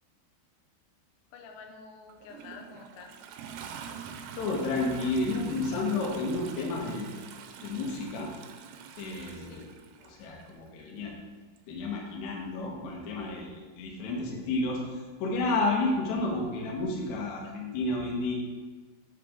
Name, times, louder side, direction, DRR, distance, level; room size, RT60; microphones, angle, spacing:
voice 1, 1.3-3.2 9.3-9.8, left 5 dB, 85° left, 4 dB, 2.9 m, -49 dB
Toilet flush, 2.1-10.5 11.6-11.7, right 7 dB, 90° right, 2.9 m, -45 dB
voice 2, 4.3-7.2 7.6-8.3 9.0-9.7 10.0-11.1 11.7-18.3, left 2 dB, 65° left, -2 dB, 2.0 m, -31 dB
7.8 x 6.6 x 3.8 m, 1.3 s
omnidirectional pair, 5.2 m